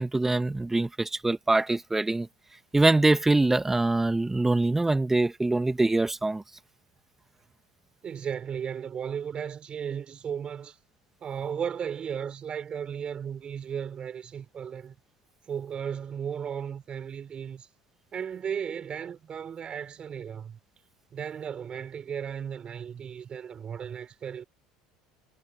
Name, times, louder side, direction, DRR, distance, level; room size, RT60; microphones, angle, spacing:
voice 1, 0.0-2.3 2.7-6.4, right 2 dB, 10° right, 1.9 m, -24 dB
voice 2, 8.0-10.8 11.2-15.0 15.5-17.7 18.1-20.6 21.1-24.4, right 8 dB, 40° right, 4.4 m, -35 dB
hypercardioid pair, 75°, 3 cm